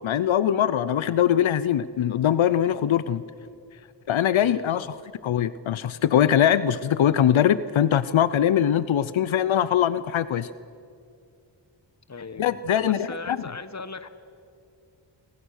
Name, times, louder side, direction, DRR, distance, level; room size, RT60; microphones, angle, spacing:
voice 1, 0.0-3.2 4.1-5.0 5.2-10.5 12.4-13.4, left 10 dB, 90° left, 16 dB, 0.7 m, -22 dB
voice 2, 4.4-4.9 12.1-14.1, left 4 dB, 35° left, 12 dB, 1.4 m, -38 dB
28.5 x 25.5 x 6.4 m, 2.5 s
wide cardioid pair, 65°, 46 cm